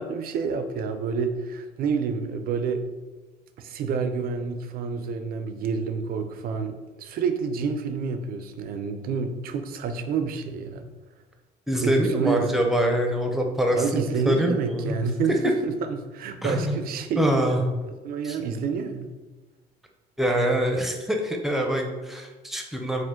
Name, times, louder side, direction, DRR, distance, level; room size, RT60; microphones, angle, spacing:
voice 1, 0.0-2.9 3.6-10.8 11.8-12.5 13.7-17.2 18.0-19.1, right 5 dB, 60° right, 8 dB, 0.5 m, -28 dB
voice 2, 11.7-15.0 16.4-16.8 17.2-17.6 18.2-18.4 20.2-23.0, right 1 dB, ahead, 2 dB, 0.6 m, -24 dB
5.0 x 2.1 x 3.6 m, 1.2 s
cardioid pair, 110°, 17 cm